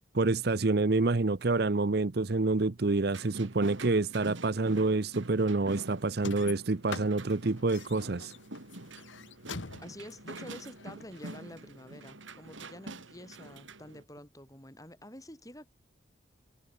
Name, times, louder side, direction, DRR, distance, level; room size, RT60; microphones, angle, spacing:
voice 1, 0.1-8.3, right 3 dB, 55° right, 0.7 m, -27 dB
sound 1, 3.1-14.0, right 2 dB, 80° right, 4.1 m, -46 dB
sound 2, 6.2-11.4, left 4 dB, 75° left, 1.9 m, -44 dB
voice 2, 9.5-15.7, left 1 dB, 15° left, 7.6 m, -48 dB
head